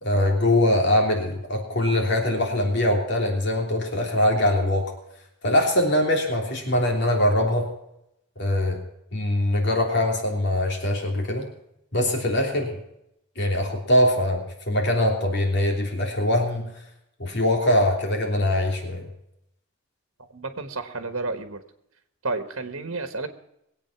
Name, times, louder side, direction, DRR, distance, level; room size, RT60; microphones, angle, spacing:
voice 1, 0.0-4.8 5.4-7.7 8.4-8.8 9.1-11.5 11.9-12.8 13.4-16.7 17.2-19.0, left 1 dB, 55° left, 2 dB, 3.2 m, -22 dB
voice 2, 20.2-21.6 22.2-23.3, right 3 dB, 80° right, 8 dB, 1.4 m, -31 dB
21.5 x 8.5 x 5.9 m, 0.79 s
head